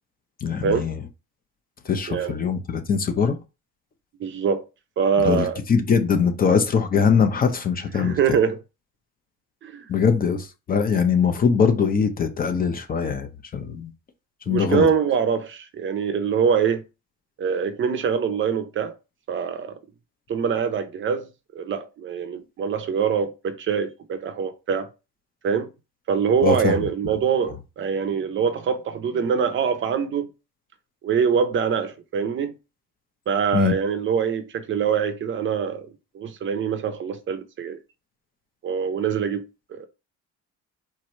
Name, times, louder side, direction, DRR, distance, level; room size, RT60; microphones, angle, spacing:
voice 1, 0.4-1.0 1.8-3.4 5.2-8.2 9.9-13.9 14.5-14.9 26.4-27.1 33.5-33.7, left 6 dB, 30° left, 0.6 m, -22 dB
voice 2, 4.2-4.7 5.0-5.6 7.9-8.6 9.6-9.8 14.5-16.8 17.4-18.9 19.3-19.8 20.3-24.9 25.4-25.7 26.1-30.3 31.0-32.5 33.3-35.9 36.1-37.8 38.6-39.4 39.7-39.9, right 6 dB, 40° right, 0.6 m, -24 dB
4.6 x 2.6 x 4.2 m
cardioid pair, 150°, 30 cm